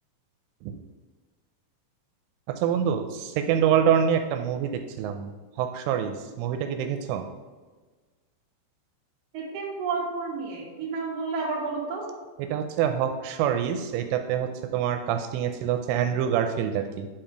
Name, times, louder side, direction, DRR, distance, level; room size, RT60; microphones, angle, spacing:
voice 1, 2.5-5.3 5.6-7.3 12.4-17.1, right 8 dB, 85° right, 6 dB, 3.1 m, -26 dB
voice 2, 9.3-12.1, right 4 dB, 55° right, -3 dB, 1.8 m, -31 dB
10.0 x 4.5 x 5.0 m, 1.4 s
omnidirectional pair, 5.6 m